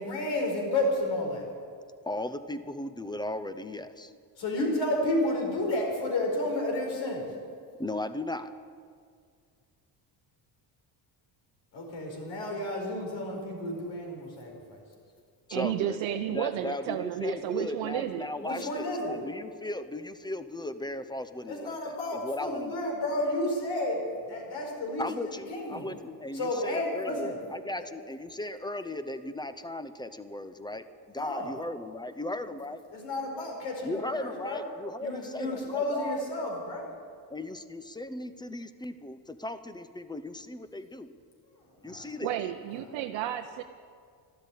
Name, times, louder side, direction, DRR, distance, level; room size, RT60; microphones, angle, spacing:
voice 1, 0.0-1.4 4.4-7.3 11.7-14.8 18.4-19.2 21.5-24.0 24.3-25.9 26.3-27.3 27.8-27.9 31.1-31.5 32.9-34.6 35.0-36.9 41.8-42.1, left 1 dB, 75° left, 0 dB, 5.0 m, -31 dB
voice 2, 2.0-4.1 7.8-8.5 15.5-16.0 16.3-22.8 25.0-32.8 33.8-36.3 37.3-41.1 41.8-42.3, left 1 dB, 10° left, 11 dB, 0.6 m, -37 dB
voice 3, 15.5-18.3 42.2-43.6, right 12 dB, 90° right, 5 dB, 0.8 m, -32 dB
13.5 x 12.5 x 8.4 m, 2.2 s
cardioid pair, 130°, 44 cm